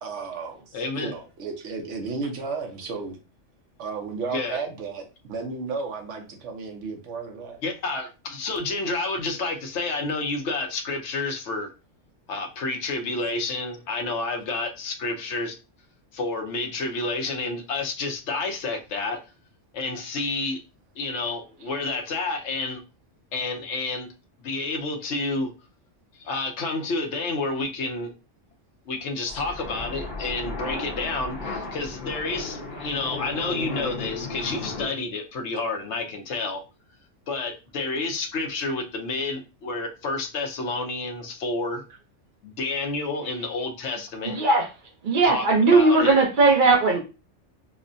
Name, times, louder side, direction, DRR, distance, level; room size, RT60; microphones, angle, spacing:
voice 1, 0.0-0.6 1.0-3.2 3.8-7.6 29.3-29.4, right 4 dB, 70° right, 1.1 m, -33 dB
voice 2, 0.7-1.1 4.3-4.6 7.6-11.7 12.3-15.6 16.1-19.2 19.7-20.6 21.0-22.8 23.3-24.1 24.4-25.5 26.2-28.1 28.9-36.6 37.3-41.8 42.4-44.4 45.2-45.4 45.7-46.1, left 3 dB, 70° left, 1.0 m, -29 dB
sound 1, 29.3-34.9, left 3 dB, 50° left, 1.0 m, -34 dB
voice 3, 44.2-44.7 45.0-47.0, right 3 dB, 45° right, 0.8 m, -18 dB
5.2 x 2.1 x 2.6 m
omnidirectional pair, 1.3 m